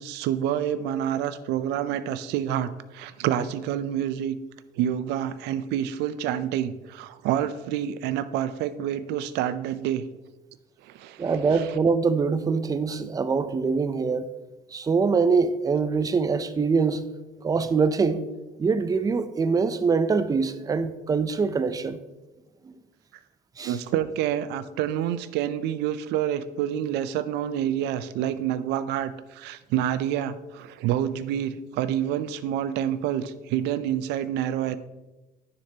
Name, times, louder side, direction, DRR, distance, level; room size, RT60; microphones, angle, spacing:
voice 1, 0.0-4.4 4.8-10.0 10.8-11.6 23.6-34.8, right 10 dB, 90° right, 0.4 m, -28 dB
voice 2, 11.2-14.3 14.7-17.1 17.4-18.3 18.6-22.0 22.6-22.7 23.6-23.8, right 5 dB, 20° right, 0.5 m, -24 dB
9.6 x 6.6 x 2.8 m
cardioid pair, 110°, 17 cm